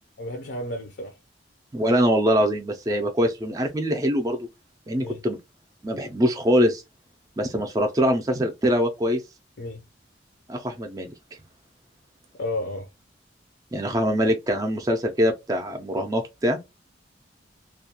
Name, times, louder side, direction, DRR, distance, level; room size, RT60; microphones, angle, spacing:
voice 1, 0.2-1.1 5.0-5.2 9.6-9.8 12.4-12.9, left 1 dB, 70° left, 0.5 m, -32 dB
voice 2, 1.7-4.5 4.9-5.4 5.8-6.8 7.4-9.2 10.5-11.1 13.7-16.6, equal, 20° right, 0.3 m, -23 dB
2.3 x 2.2 x 2.8 m
head